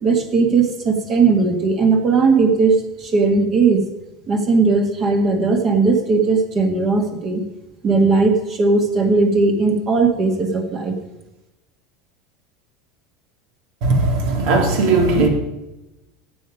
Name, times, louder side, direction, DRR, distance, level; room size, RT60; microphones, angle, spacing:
voice 1, 0.0-3.8 4.3-7.4 7.8-10.9, right 4 dB, 35° right, 4 dB, 1.9 m, -17 dB
voice 2, 13.8-15.3, right 3 dB, 70° right, 3 dB, 2.7 m, -17 dB
12.5 x 8.6 x 5.1 m, 0.96 s
supercardioid pair, 135°, 0 cm